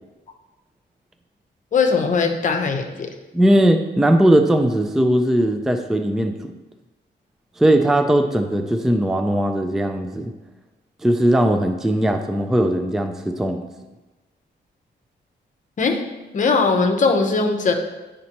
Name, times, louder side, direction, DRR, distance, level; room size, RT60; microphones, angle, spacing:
voice 1, 1.7-3.1 15.8-16.0 16.3-17.7, left 4 dB, 40° left, 5 dB, 0.8 m, -19 dB
voice 2, 3.3-6.3 7.6-10.3 11.0-13.6, right 1 dB, ahead, 6 dB, 0.3 m, -18 dB
9.4 x 5.2 x 2.9 m, 1.1 s
wide cardioid pair, 160°, 19 cm